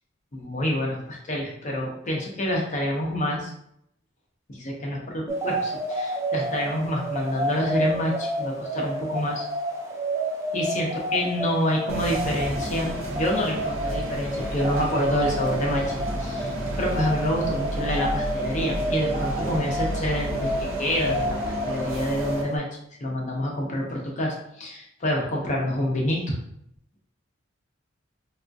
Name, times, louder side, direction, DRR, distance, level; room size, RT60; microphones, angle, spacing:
voice 1, 0.3-3.5 4.5-9.5 10.5-21.4 21.7-22.7 23.0-26.4, left 1 dB, 40° left, -1 dB, 0.6 m, -27 dB
sound 1, 5.3-22.6, right 1 dB, 15° right, 0.4 m, -30 dB
sound 2, 11.9-22.4, equal, 90° right, 0.7 m, -32 dB
3.5 x 2.3 x 2.5 m, 0.73 s
head